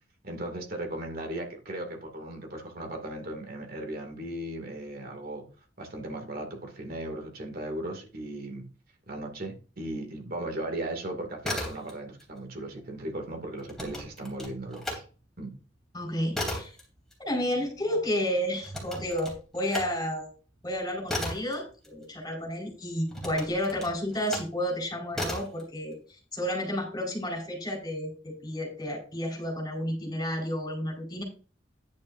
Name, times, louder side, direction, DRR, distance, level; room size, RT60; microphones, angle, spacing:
voice 1, 0.2-5.5 5.8-8.7 9.1-15.0 15.4-15.5, right 1 dB, 50° right, 3 dB, 2.4 m, -37 dB
sound 1, 11.3-12.3 12.5-15.0 15.4-22.5 23.1-24.6 25.1-25.6, left 1 dB, 5° left, 3.4 m, -36 dB
voice 2, 15.9-16.7 17.2-20.3 20.6-26.0 26.3-31.2, equal, 20° left, 0 dB, 4.8 m, -31 dB
10.5 x 9.8 x 2.7 m, 0.37 s
head